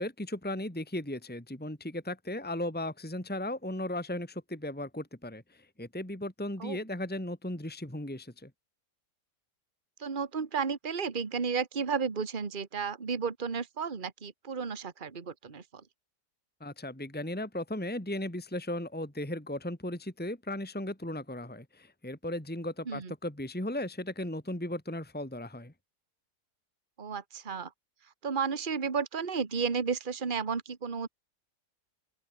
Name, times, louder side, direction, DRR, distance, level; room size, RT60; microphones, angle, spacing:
voice 1, 0.0-8.5 16.6-25.7, left 1 dB, 5° left, 2.3 m, -36 dB
voice 2, 10.0-15.6 22.9-23.1 27.0-27.7 28.2-31.1, right 5 dB, 30° right, 1.7 m, -33 dB
open air
omnidirectional pair, 1.8 m